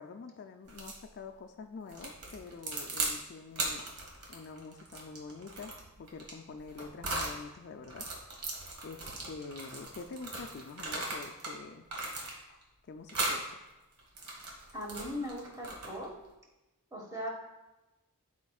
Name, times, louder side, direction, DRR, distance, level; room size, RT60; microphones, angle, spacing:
voice 1, 0.0-3.8 4.3-8.1 8.8-11.9 12.9-13.4, left 4 dB, 50° left, 6 dB, 0.4 m, -46 dB
sound 1, 0.7-1.0 1.9-3.2 3.5-7.4 7.8-11.6 11.9-12.6 13.1-13.4 14.0-16.1, right 2 dB, 75° right, 1.6 m, -38 dB
voice 2, 14.7-16.1 16.9-17.3, equal, 15° right, -1 dB, 1.4 m, -39 dB
12.5 x 4.4 x 2.3 m, 1.0 s
head